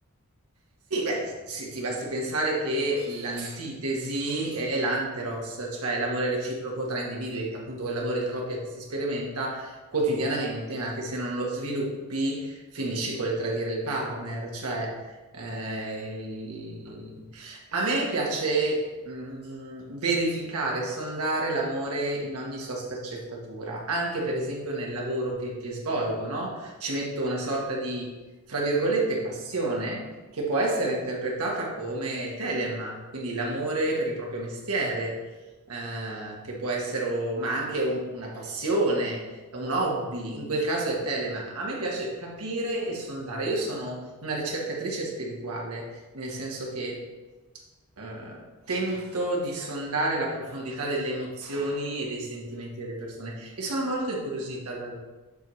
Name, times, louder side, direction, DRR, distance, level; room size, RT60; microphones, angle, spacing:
voice 1, 0.9-15.0 15.3-28.2 28.5-35.2 35.7-39.2 39.5-47.0 48.0-55.0, right 2 dB, 85° right, -2 dB, 1.3 m, -30 dB
7.2 x 5.4 x 3.2 m, 1.2 s
head